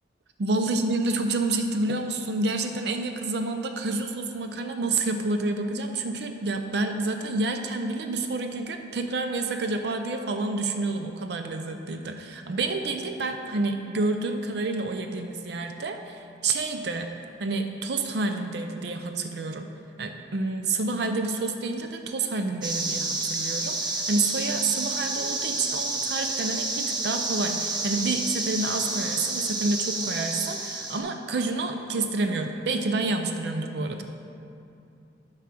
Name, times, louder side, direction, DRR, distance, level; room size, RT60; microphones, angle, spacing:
voice 1, 0.4-17.1 17.4-19.7 20.0-34.0, right 3 dB, 65° right, 6 dB, 0.5 m, -29 dB
sound 1, 22.6-31.0, right 2 dB, 25° right, 0.8 m, -30 dB
9.3 x 4.9 x 5.9 m, 2.7 s
head